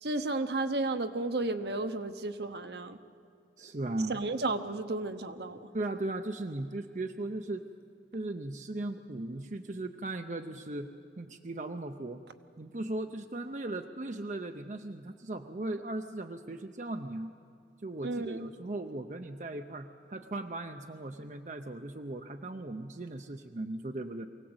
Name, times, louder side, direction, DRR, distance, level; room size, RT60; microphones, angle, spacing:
voice 1, 0.0-3.0 4.1-5.7 18.0-18.5, right 2 dB, 70° right, 9 dB, 1.0 m, -33 dB
voice 2, 3.6-4.2 5.7-7.7 8.1-10.9 11.2-12.2 12.6-17.3 17.8-24.3, right 2 dB, 40° right, 6 dB, 0.7 m, -37 dB
24.0 x 17.0 x 7.9 m, 2.3 s
head